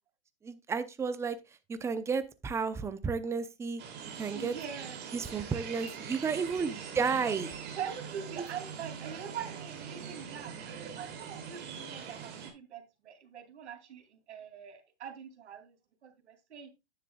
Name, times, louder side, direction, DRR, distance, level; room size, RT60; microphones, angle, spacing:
voice 1, 0.4-1.4 1.7-3.8 4.1-4.6 5.1-7.5, right 5 dB, 10° right, 0.6 m, -32 dB
sound 1, 3.8-12.5, right 7 dB, 30° right, 2.7 m, -43 dB
voice 2, 4.3-5.1 7.7-15.7 16.0-16.7, right 8 dB, 75° right, 2.9 m, -43 dB
9.9 x 9.9 x 2.3 m
hypercardioid pair, 125°, 34 cm